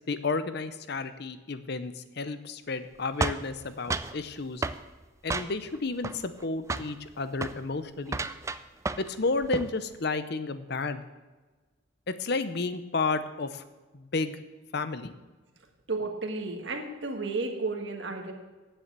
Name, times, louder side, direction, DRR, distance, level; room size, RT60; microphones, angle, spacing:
voice 1, 0.1-4.6 5.2-8.2 9.0-11.0 12.1-13.6 13.9-14.4 14.7-15.1, left 3 dB, 55° left, 12 dB, 0.7 m, -32 dB
sound 1, 3.2-4.2 4.6-4.8 5.3-5.8 6.0-6.4 6.7-6.9 7.3-7.6 8.1-9.2 9.4-9.7, right 3 dB, 15° right, 0.3 m, -32 dB
voice 2, 15.9-18.3, right 3 dB, 60° right, 3 dB, 1.6 m, -32 dB
9.5 x 7.8 x 7.4 m, 1.3 s
head